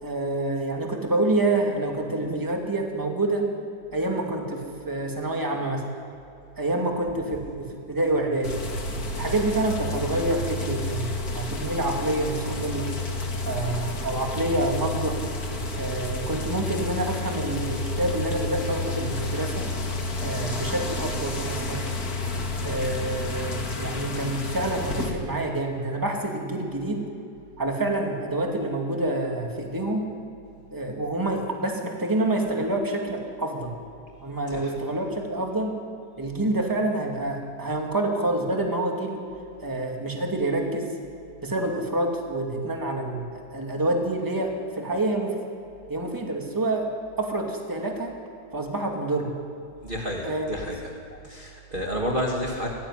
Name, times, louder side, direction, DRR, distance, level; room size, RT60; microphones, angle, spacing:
voice 1, 0.0-3.5 3.9-5.8 6.6-8.5 9.1-12.9 13.4-15.2 15.7-19.7 20.2-21.9 22.6-27.0 27.6-30.1 30.7-33.7 34.2-35.8 36.2-39.2 39.6-40.9 41.4-45.3 45.9-46.9 47.2-48.1 48.5-49.4 50.2-50.6, right 2 dB, 10° right, 1 dB, 2.5 m, -27 dB
sound 1, 8.4-25.1, left 2 dB, 55° left, 2.5 m, -30 dB
voice 2, 49.8-50.9 51.2-52.7, equal, 30° right, -2 dB, 2.3 m, -30 dB
19.0 x 15.5 x 9.9 m, 2.6 s
omnidirectional pair, 1.9 m